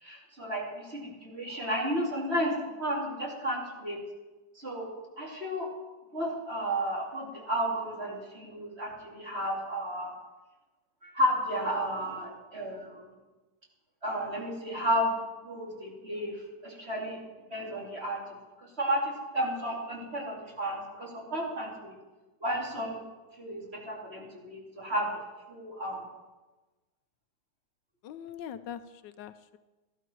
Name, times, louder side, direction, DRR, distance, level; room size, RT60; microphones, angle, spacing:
voice 1, 0.0-4.0 4.5-4.9 5.2-5.7 6.1-10.1 11.0-13.0 14.0-17.2 17.5-18.2 18.6-21.9 22.4-23.0 23.4-25.1 25.5-26.0, equal, 35° right, -3 dB, 3.1 m, -32 dB
voice 2, 28.0-29.6, left 9 dB, 80° left, 12 dB, 1.2 m, -42 dB
14.5 x 12.0 x 4.5 m, 1.2 s
omnidirectional pair, 2.0 m